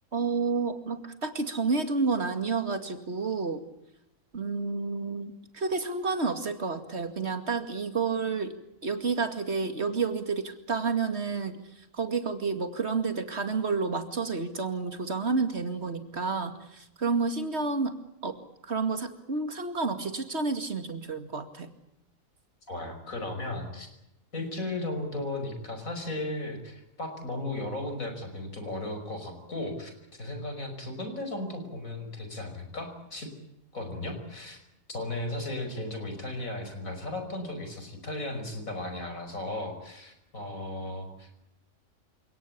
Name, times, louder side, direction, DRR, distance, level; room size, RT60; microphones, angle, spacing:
voice 1, 0.1-3.6 4.3-8.5 8.8-11.6 11.9-18.0 18.2-18.4 18.6-21.7, right 4 dB, 50° right, 8 dB, 2.6 m, -30 dB
voice 2, 22.7-23.9 24.3-33.3 33.7-34.6 34.9-41.3, left 2 dB, 70° left, 6 dB, 6.0 m, -35 dB
28.5 x 18.0 x 8.7 m, 0.85 s
omnidirectional pair, 1.5 m